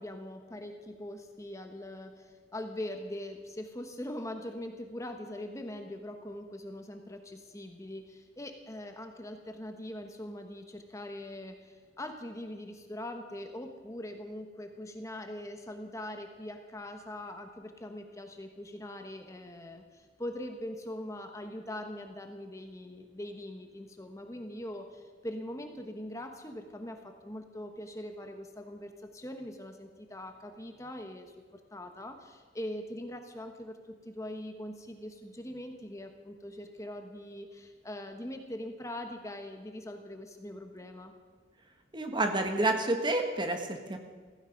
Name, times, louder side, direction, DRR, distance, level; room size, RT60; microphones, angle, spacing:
voice 1, 0.0-41.1, left 1 dB, 15° left, 5 dB, 1.2 m, -42 dB
voice 2, 41.9-44.0, right 2 dB, 25° right, 5 dB, 1.4 m, -29 dB
15.5 x 15.5 x 5.2 m, 1.5 s
head